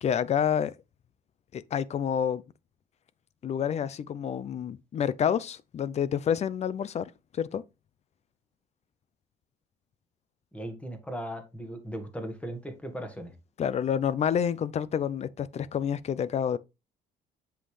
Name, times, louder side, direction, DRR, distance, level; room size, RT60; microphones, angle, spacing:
voice 1, 0.0-0.7 1.5-2.4 3.4-7.6 13.6-16.6, left 8 dB, 40° left, 0.6 m, -28 dB
voice 2, 10.5-13.3, right 1 dB, 5° left, 1.7 m, -37 dB
7.7 x 5.6 x 3.3 m
cardioid pair, 110°, 17 cm